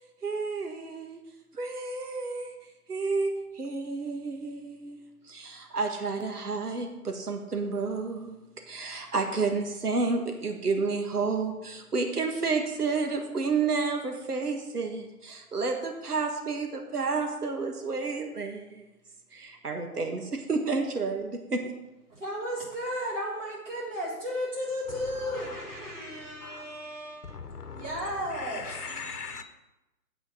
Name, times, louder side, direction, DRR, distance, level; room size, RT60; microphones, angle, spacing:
voice 1, 0.2-1.2 1.5-2.5 2.9-5.0 5.2-8.4 8.7-18.9 19.3-21.6, right 4 dB, 80° right, 1.6 m, -30 dB
voice 2, 22.1-27.4 27.8-29.4, equal, 55° right, 3.7 m, -35 dB
voice 3, 25.2-26.8 27.2-29.4, left 5 dB, 80° left, 1.1 m, -41 dB
8.0 x 6.2 x 8.0 m
figure-of-eight pair, 155°, 46 cm